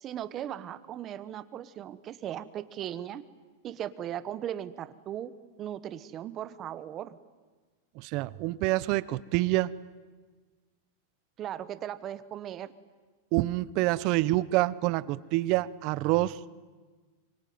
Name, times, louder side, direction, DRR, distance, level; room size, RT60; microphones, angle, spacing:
voice 1, 0.0-3.2 3.6-5.3 5.6-7.2 11.4-12.7, right 11 dB, 25° right, 14 dB, 1.2 m, -37 dB
voice 2, 8.0-9.7 13.3-16.4, right 18 dB, 40° right, 19 dB, 0.8 m, -27 dB
24.5 x 24.5 x 9.4 m, 1.4 s
supercardioid pair, 155°, 0 cm